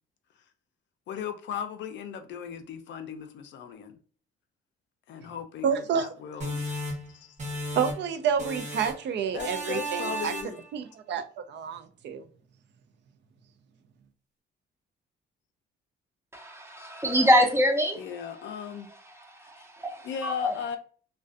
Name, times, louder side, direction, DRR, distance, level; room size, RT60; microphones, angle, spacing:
voice 1, 1.1-4.0 5.1-7.4 9.3-10.6 18.0-18.9 20.0-20.8, left 8 dB, 65° left, 0.4 m, -37 dB
voice 2, 5.6-6.1 7.8-10.3 10.7-12.2, right 7 dB, 65° right, 0.4 m, -29 dB
sound 1, 6.4-8.1 8.4-9.1 9.4-10.7, equal, 35° right, 0.9 m, -34 dB
voice 3, 16.3-18.1 19.2-20.5, equal, 15° right, 0.5 m, -25 dB
2.4 x 2.2 x 2.4 m
cardioid pair, 90°, 20 cm